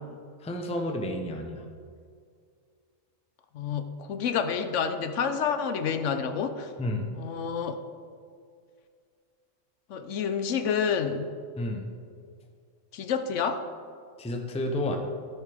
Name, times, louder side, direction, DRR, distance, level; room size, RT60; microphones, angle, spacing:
voice 1, 0.4-1.6 6.8-7.1 11.6-11.9 14.2-15.0, left 1 dB, 5° left, 3 dB, 0.5 m, -31 dB
voice 2, 3.5-6.7 7.2-7.8 9.9-11.3 12.9-13.6, left 6 dB, 70° left, 8 dB, 0.9 m, -29 dB
13.5 x 7.3 x 3.5 m, 2.2 s
omnidirectional pair, 1.3 m